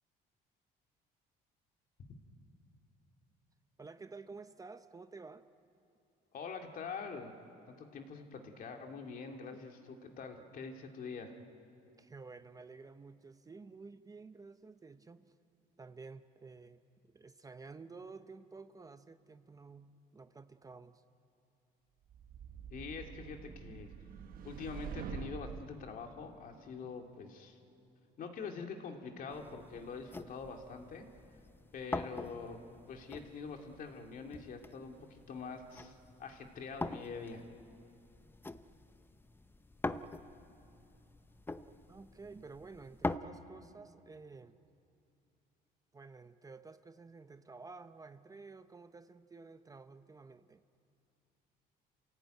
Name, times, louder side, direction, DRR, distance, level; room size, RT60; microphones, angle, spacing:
voice 1, 3.8-5.5 9.5-9.6 12.0-15.4 15.8-21.0 23.7-23.8 41.9-44.6 45.9-50.6, right 4 dB, 20° right, 10 dB, 0.7 m, -52 dB
voice 2, 6.3-7.3 7.7-11.3 22.7-23.9 24.4-27.6 28.2-31.1 31.7-32.6 32.9-37.4, left 5 dB, 55° left, 3 dB, 2.5 m, -45 dB
sound 1, 22.1-25.8, right 7 dB, 60° right, 1.3 m, -46 dB
sound 2, 29.3-43.2, left 2 dB, 10° left, 0.7 m, -44 dB
28.0 x 16.0 x 9.1 m, 2.7 s
cardioid pair, 110°, 17 cm